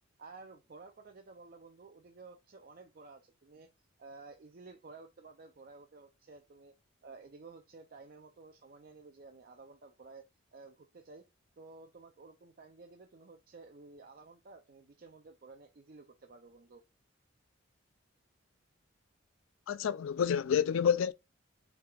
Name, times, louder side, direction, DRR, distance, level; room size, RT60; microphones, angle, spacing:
voice 1, 0.2-3.7 4.0-6.7 7.0-10.2 10.5-11.2 11.6-16.8, right 3 dB, 45° right, 0.5 m, -53 dB
voice 2, 19.7-21.1, left 7 dB, 80° left, 0.3 m, -28 dB
5.6 x 3.4 x 2.3 m
head